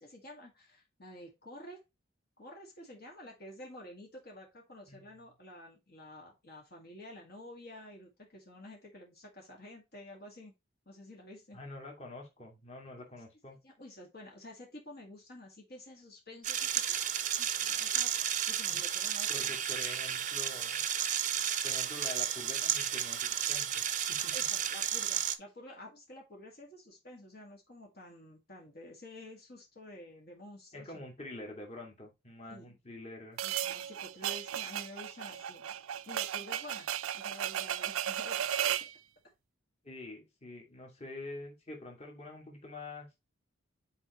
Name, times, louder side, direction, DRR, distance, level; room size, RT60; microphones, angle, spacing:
voice 1, 0.0-1.8 2.4-10.5 10.9-11.6 13.6-19.5 24.3-31.0 32.5-32.8 33.4-35.8 36.1-36.9 37.1-38.5 38.8-38.9, left 1 dB, 50° left, -1 dB, 2.0 m, -50 dB
voice 2, 11.5-13.6 18.7-18.8 19.3-20.8 21.6-24.3 30.7-33.4 39.8-43.1, left 2 dB, 30° left, 1 dB, 2.2 m, -46 dB
sound 1, 16.4-25.4, right 10 dB, 40° right, 0.7 m, -32 dB
sound 2, 33.4-38.9, right 10 dB, 90° right, 0.4 m, -35 dB
9.6 x 4.6 x 3.1 m, 0.23 s
head